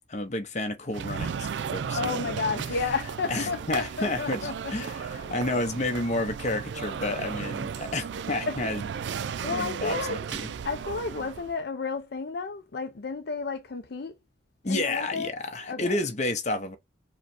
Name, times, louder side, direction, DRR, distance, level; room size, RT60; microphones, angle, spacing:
voice 1, 0.1-2.3 2.7-2.8 3.3-8.9 9.5-10.5 14.6-16.8, left 2 dB, 40° left, 0.9 m, -31 dB
Library environment, 0.9-11.6, right 6 dB, 70° right, 0.4 m, -35 dB
voice 2, 1.9-4.7 5.2-5.3 8.5-8.7 9.4-10.2 10.6-14.1 14.7-15.3 15.7-16.0, left 4 dB, 60° left, 0.5 m, -32 dB
4.9 x 2.2 x 4.2 m
head